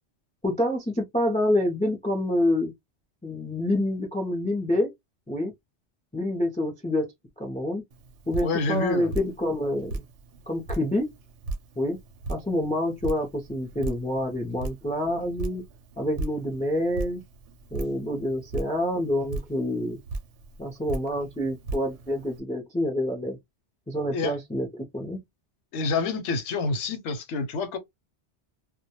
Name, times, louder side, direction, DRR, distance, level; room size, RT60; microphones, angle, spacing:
voice 1, 0.4-2.7 3.2-4.9 5.3-5.5 6.1-7.1 7.4-7.8 8.3-10.0 10.5-11.1 11.8-12.0 12.3-15.6 16.0-17.2 17.7-20.0 20.6-23.4 23.9-24.7 24.9-25.2, left 1 dB, 10° left, 0.3 m, -27 dB
Drip, 7.9-22.4, right 3 dB, 85° right, 0.9 m, -38 dB
voice 2, 8.4-9.1 24.1-24.3 25.7-27.8, left 4 dB, 85° left, 1.0 m, -27 dB
2.2 x 2.1 x 2.7 m
omnidirectional pair, 1.1 m